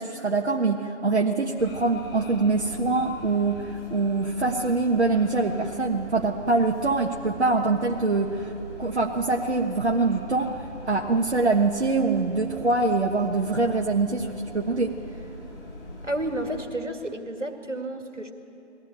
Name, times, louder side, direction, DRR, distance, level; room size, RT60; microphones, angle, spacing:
voice 1, 0.0-8.5 8.8-10.5 10.9-14.9, right 3 dB, 65° right, 0 dB, 1.4 m, -24 dB
sound 1, 1.6-16.6, left 1 dB, 45° left, 6.1 m, -42 dB
voice 2, 16.0-18.3, right 1 dB, 85° right, 4 dB, 2.3 m, -31 dB
21.0 x 16.0 x 8.9 m, 2.9 s
figure-of-eight pair, 150°, 36 cm